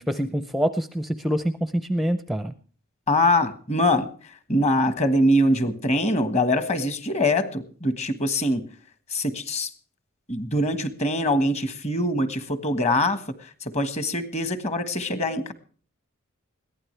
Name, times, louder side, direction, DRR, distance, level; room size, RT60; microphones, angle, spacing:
voice 1, 0.0-2.5, equal, ahead, 11 dB, 0.6 m, -26 dB
voice 2, 3.1-4.1 4.5-8.7 9.1-9.7 10.3-15.5, left 1 dB, 30° left, 11 dB, 1.5 m, -23 dB
21.5 x 15.5 x 3.3 m, 0.43 s
head